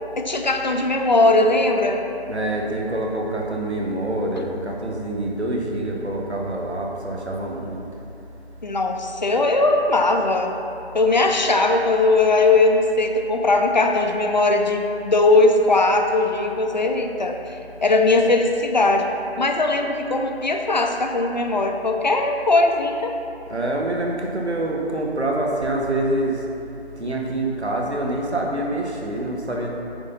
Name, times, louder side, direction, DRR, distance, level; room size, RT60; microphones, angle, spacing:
voice 1, 0.2-2.0 8.6-10.5 10.9-19.1 19.4-23.1, left 2 dB, 45° left, 4 dB, 0.6 m, -19 dB
voice 2, 2.3-7.8 23.5-26.4 27.0-29.7, right 1 dB, 90° right, -1 dB, 1.5 m, -26 dB
8.9 x 3.9 x 5.6 m, 2.8 s
figure-of-eight pair, 165°, 32 cm